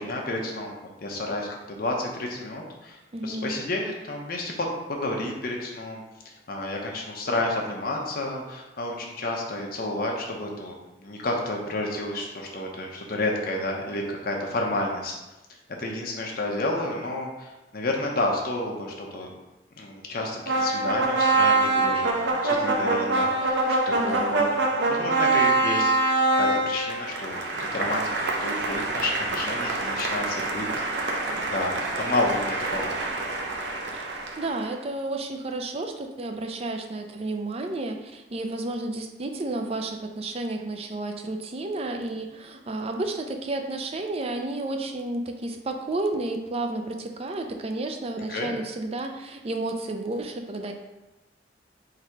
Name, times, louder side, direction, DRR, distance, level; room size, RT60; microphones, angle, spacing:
voice 1, 0.0-15.2 15.8-19.3 19.8-27.4 27.7-32.9 48.3-48.5, left 2 dB, 55° left, 0 dB, 0.8 m, -31 dB
voice 2, 3.1-3.6 23.9-24.5 33.9-50.7, right 2 dB, 35° right, 4 dB, 0.4 m, -31 dB
sound 1, 20.5-34.6, right 2 dB, 85° right, 0.7 m, -25 dB
3.8 x 2.8 x 4.6 m, 1.0 s
head